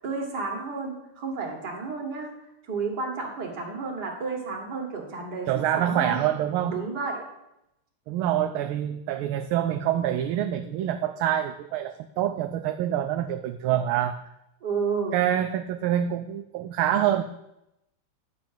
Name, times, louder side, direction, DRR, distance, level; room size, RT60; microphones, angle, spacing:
voice 1, 0.0-2.3 2.6-6.2 6.7-7.2 14.6-15.1, right 4 dB, 50° right, 1 dB, 2.3 m, -31 dB
voice 2, 5.5-6.8 8.1-14.2 15.1-17.2, right 11 dB, 80° right, 7 dB, 1.4 m, -26 dB
9.5 x 5.0 x 7.3 m, 0.85 s
omnidirectional pair, 2.4 m